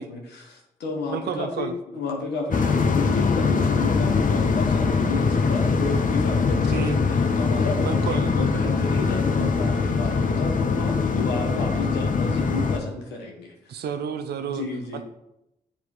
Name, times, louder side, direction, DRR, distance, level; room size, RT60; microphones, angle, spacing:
voice 1, 0.0-13.5 14.4-15.0, left 3 dB, 85° left, 0 dB, 1.2 m, -32 dB
voice 2, 1.1-1.7 6.7-7.0 7.8-8.3 13.7-14.7 14.9-15.0, right 7 dB, 75° right, 9 dB, 0.5 m, -30 dB
sound 1, 2.5-12.8, left 4 dB, 50° left, 0.9 m, -22 dB
7.6 x 3.5 x 4.6 m, 0.87 s
supercardioid pair, 45°, 17 cm